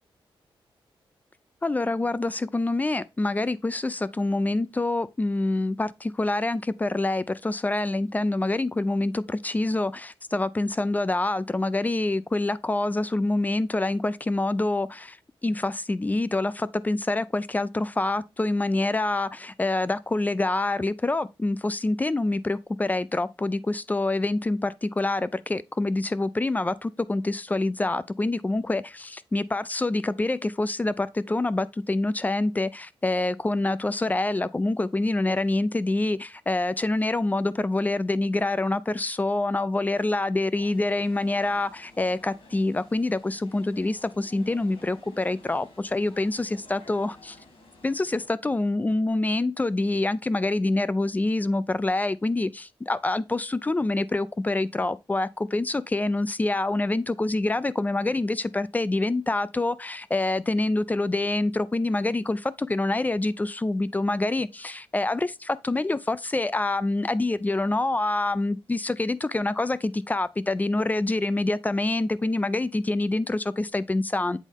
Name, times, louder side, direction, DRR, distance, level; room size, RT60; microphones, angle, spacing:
voice 1, 1.6-15.2 15.4-47.3 47.8-74.4, left 2 dB, 15° left, 0.4 m, -26 dB
sound 1, 40.5-48.3, left 2 dB, 80° left, 3.7 m, -52 dB
8.2 x 4.1 x 3.6 m
wide cardioid pair, 135°, 9 cm